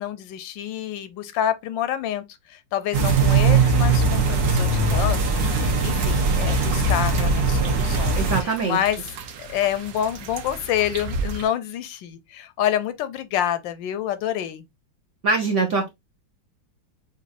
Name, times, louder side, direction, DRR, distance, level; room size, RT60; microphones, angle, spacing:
voice 1, 0.0-2.2 2.5-9.1 9.4-14.7, left 10 dB, 80° left, 1.3 m, -27 dB
sound 1, 2.9-8.4, right 3 dB, 70° right, 1.7 m, -20 dB
sound 2, 6.3-11.5, right 3 dB, 90° right, 1.5 m, -35 dB
voice 2, 8.2-8.8 15.2-15.9, right 4 dB, 55° right, 0.8 m, -23 dB
6.2 x 2.6 x 2.5 m
omnidirectional pair, 2.1 m